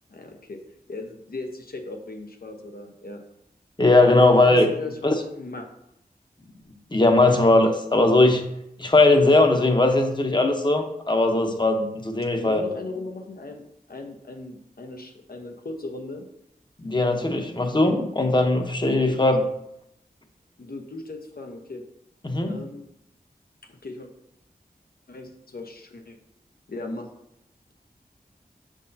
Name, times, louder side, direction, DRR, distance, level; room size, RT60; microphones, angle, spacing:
voice 1, 0.1-0.6 0.9-3.2 4.3-5.7 12.3-16.2 18.9-19.2 20.6-21.8 22.5-22.8 23.6-24.1 25.1-26.2 26.7-27.1, left 2 dB, 70° left, 4 dB, 1.0 m, -38 dB
voice 2, 3.8-4.7 5.0-5.1 6.9-8.4 8.8-12.6 16.8-19.4 22.2-22.6, left 2 dB, 30° left, 4 dB, 0.9 m, -19 dB
6.7 x 6.2 x 2.7 m, 0.79 s
wide cardioid pair, 55°, 16 cm